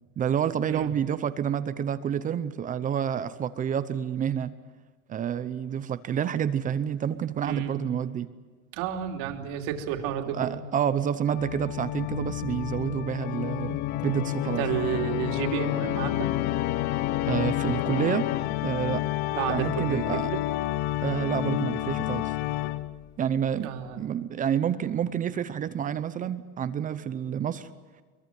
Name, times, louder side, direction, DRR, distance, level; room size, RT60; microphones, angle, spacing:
voice 1, 0.2-4.5 5.1-8.3 10.3-14.6 17.2-18.3 18.6-19.0 19.5-20.3 21.0-22.4 23.2-27.7, right 9 dB, 20° right, 13 dB, 0.7 m, -28 dB
voice 2, 7.4-7.8 8.7-10.6 12.3-12.4 14.4-16.3 19.2-20.4 23.6-24.1, right 9 dB, 55° right, 4 dB, 3.1 m, -31 dB
Organ, 11.3-23.1, left 15 dB, 50° left, 0.9 m, -29 dB
23.0 x 22.5 x 9.3 m, 1.4 s
supercardioid pair, 160°, 40 cm